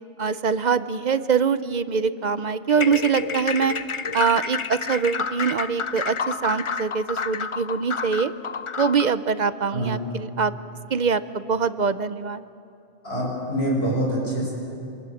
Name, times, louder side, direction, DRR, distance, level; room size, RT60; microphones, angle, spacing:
voice 1, 0.2-3.7 4.1-8.3 8.8-10.5 10.9-12.4, right 6 dB, 50° right, 13 dB, 0.6 m, -23 dB
sound 1, 2.7-9.2, left 5 dB, 40° left, 0.4 m, -30 dB
voice 2, 13.0-14.5, right 1 dB, 60° left, -4 dB, 7.3 m, -25 dB
26.5 x 20.0 x 7.2 m, 2.6 s
omnidirectional pair, 1.2 m